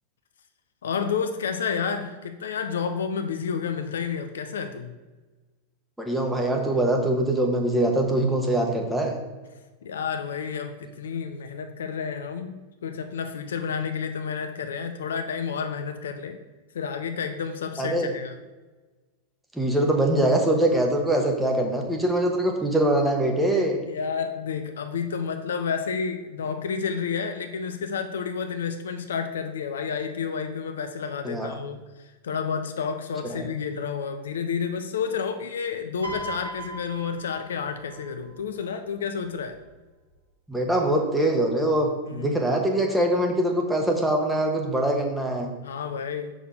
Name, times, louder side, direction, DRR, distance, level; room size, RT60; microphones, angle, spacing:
voice 1, 0.8-5.0 9.8-16.4 16.7-18.4 23.9-39.6 42.1-42.5 45.6-46.3, left 6 dB, 65° left, 7 dB, 0.5 m, -30 dB
voice 2, 6.0-9.1 17.8-18.1 19.5-23.8 31.2-31.5 33.3-33.4 40.5-45.5, right 1 dB, 5° right, 1 dB, 1.2 m, -23 dB
Piano, 36.0-38.4 39.4-39.7, right 1 dB, 80° right, 2.0 m, -38 dB
6.8 x 6.2 x 3.8 m, 1.2 s
figure-of-eight pair, 90°, 0 cm